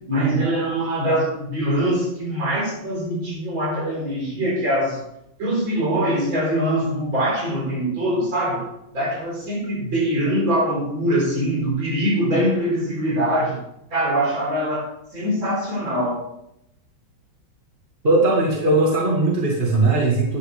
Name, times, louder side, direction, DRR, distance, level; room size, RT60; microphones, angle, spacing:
voice 1, 0.1-5.0 5.4-8.7 8.9-13.6 13.9-16.2, right 1 dB, 75° right, -4 dB, 5.3 m, -23 dB
voice 2, 18.0-20.4, right 2 dB, 30° right, -3 dB, 2.2 m, -19 dB
14.0 x 10.0 x 3.4 m, 0.78 s
omnidirectional pair, 2.2 m